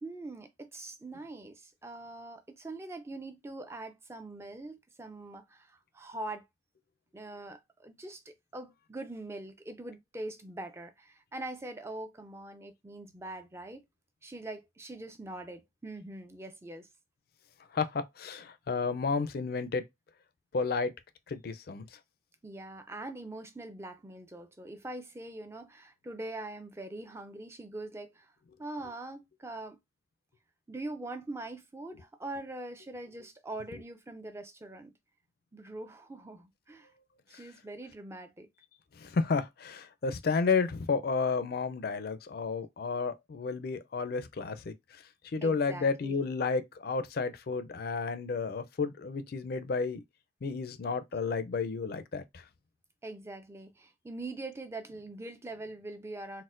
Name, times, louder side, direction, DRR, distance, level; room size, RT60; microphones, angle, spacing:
voice 1, 0.0-6.4 7.1-13.9 14.2-16.9 22.4-28.3 28.6-29.8 30.7-34.9 35.5-36.9 37.3-38.5 45.4-46.2 53.0-56.4, right 2 dB, 15° right, 0.4 m, -43 dB
voice 2, 17.7-19.8 20.5-20.9 21.3-22.0 38.9-50.0 50.4-52.4, left 4 dB, 55° left, 0.4 m, -32 dB
4.1 x 2.1 x 2.4 m
head